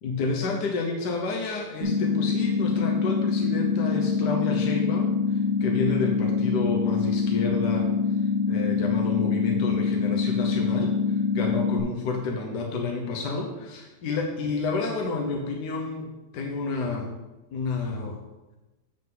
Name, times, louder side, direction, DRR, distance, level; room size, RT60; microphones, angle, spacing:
voice 1, 0.0-17.1 17.5-18.2, left 4 dB, 75° left, 1 dB, 1.5 m, -30 dB
sound 1, 1.8-11.8, left 5 dB, 20° right, 1.0 m, -25 dB
7.5 x 7.0 x 3.8 m, 1.1 s
omnidirectional pair, 1.8 m